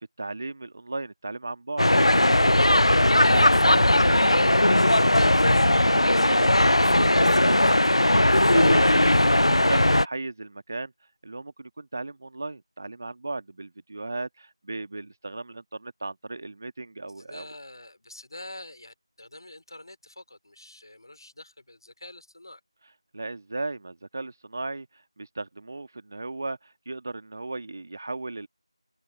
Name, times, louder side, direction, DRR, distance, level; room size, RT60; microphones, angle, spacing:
voice 1, 0.2-1.9 3.1-10.9 11.2-17.5 23.1-28.5, right 2 dB, 35° right, 1.7 m, -36 dB
sound 1, 1.8-10.0, left 1 dB, 85° left, 0.3 m, -19 dB
voice 2, 17.2-22.6, left 1 dB, 50° left, 3.3 m, -46 dB
figure-of-eight pair, 170°, 3 cm